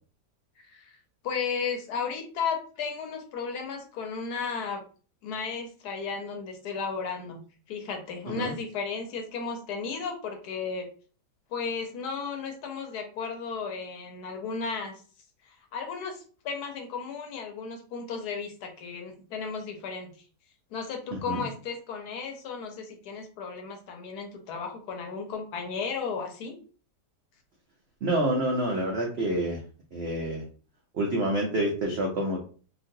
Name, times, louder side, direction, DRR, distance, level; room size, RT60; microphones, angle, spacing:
voice 1, 0.6-1.0 1.2-4.8 5.2-7.4 7.7-10.9 11.5-15.0 15.4-20.1 20.7-26.6, left 5 dB, 75° left, 3 dB, 1.2 m, -34 dB
voice 2, 21.1-21.4 28.0-29.6 29.9-30.4 30.9-32.4, right 1 dB, 70° right, -1 dB, 0.6 m, -28 dB
3.0 x 2.4 x 2.6 m, 0.40 s
omnidirectional pair, 1.8 m